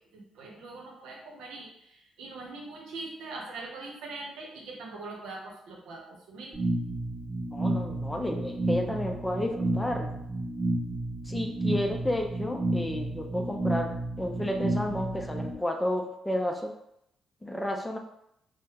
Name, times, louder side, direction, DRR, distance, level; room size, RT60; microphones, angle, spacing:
voice 1, 0.0-6.6, right 3 dB, 90° right, -1 dB, 0.7 m, -42 dB
sound 1, 6.5-15.5, right 2 dB, 10° right, 1.2 m, -31 dB
voice 2, 7.5-10.2 11.3-16.7 17.4-18.0, left 1 dB, 10° left, 3 dB, 0.4 m, -32 dB
3.3 x 2.1 x 3.0 m, 0.76 s
cardioid pair, 90°, 0 cm